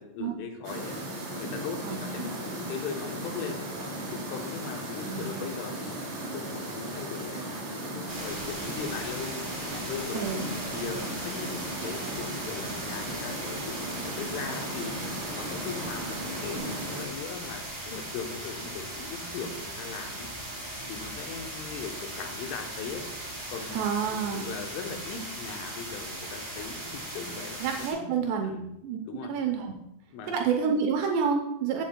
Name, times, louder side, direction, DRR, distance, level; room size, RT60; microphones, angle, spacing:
voice 1, 0.0-3.7 4.1-20.3 20.9-23.1 23.5-23.8 24.1-28.1 28.4-28.7 29.0-29.3 30.1-30.4, left 6 dB, 90° left, 4 dB, 3.5 m, -39 dB
sound 1, 0.6-17.0, right 1 dB, 40° right, 3.3 m, -36 dB
voice 2, 5.0-5.4 10.1-10.4 23.7-24.4 27.6-28.5 28.8-29.7 30.3-31.8, right 6 dB, 80° right, 3 dB, 2.6 m, -28 dB
sound 2, 8.1-27.9, right 1 dB, 25° right, 3.2 m, -39 dB
Engine, 9.6-16.6, equal, 5° right, 0.6 m, -47 dB
13.5 x 8.3 x 2.2 m, 0.85 s
omnidirectional pair, 5.5 m